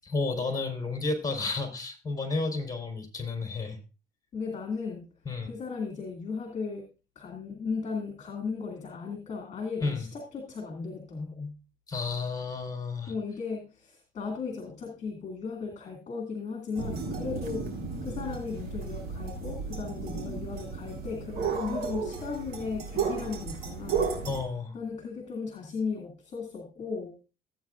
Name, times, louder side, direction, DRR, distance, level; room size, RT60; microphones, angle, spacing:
voice 1, 0.0-3.8 5.2-5.5 9.8-10.1 11.9-13.1 24.2-24.8, left 3 dB, 20° left, 3 dB, 4.2 m, -31 dB
voice 2, 4.3-5.1 5.5-6.8 7.2-11.5 13.1-17.6 18.0-24.1 24.7-27.2, left 5 dB, 40° left, 1 dB, 2.5 m, -36 dB
sound 1, 16.8-24.4, right 5 dB, 70° right, 3.6 m, -34 dB
15.5 x 9.0 x 2.5 m, 0.31 s
cardioid pair, 110°, 17 cm